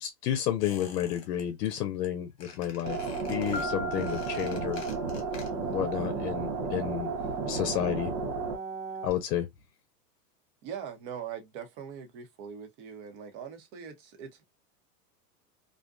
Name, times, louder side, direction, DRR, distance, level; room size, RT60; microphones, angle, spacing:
voice 1, 0.0-3.0 3.3-4.8 5.7-7.1 7.5-8.1 9.0-9.5, left 11 dB, 75° left, 0.7 m, -31 dB
Squeak, 0.6-1.4 1.7-2.1 2.4-5.8 6.1-6.2, left 6 dB, 30° left, 1.0 m, -48 dB
sound 1, 2.8-9.1, right 4 dB, 75° right, 1.0 m, -33 dB
Piano, 3.5-5.4, left 4 dB, 10° left, 0.6 m, -41 dB
voice 2, 10.6-14.4, right 7 dB, 40° right, 0.8 m, -41 dB
2.5 x 2.1 x 2.4 m
supercardioid pair, 135°, 49 cm